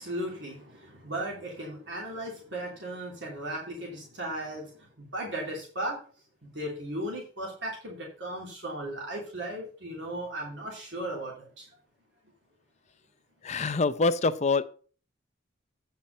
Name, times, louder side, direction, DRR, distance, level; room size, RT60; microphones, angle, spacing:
voice 1, 0.0-6.0 6.4-11.7, right 1 dB, 80° right, 2.9 m, -36 dB
voice 2, 13.4-14.6, left 3 dB, 40° left, 0.6 m, -25 dB
8.8 x 5.8 x 5.3 m
head